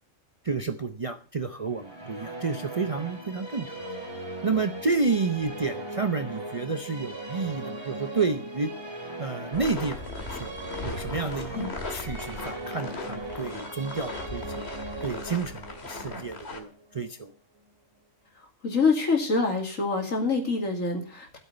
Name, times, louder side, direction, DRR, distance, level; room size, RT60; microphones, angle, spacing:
voice 1, 0.4-3.7 4.4-8.7 9.2-10.5 10.8-14.7 15.0-17.3, right 4 dB, 35° right, 8 dB, 0.6 m, -30 dB
Musical instrument, 1.6-17.1, right 2 dB, 20° right, 2.6 m, -39 dB
sound 1, 9.5-16.6, left 3 dB, 50° left, 2.2 m, -38 dB
voice 2, 18.6-21.4, left 4 dB, 75° left, 3 dB, 3.0 m, -26 dB
13.0 x 7.8 x 6.7 m, 0.41 s
omnidirectional pair, 1.4 m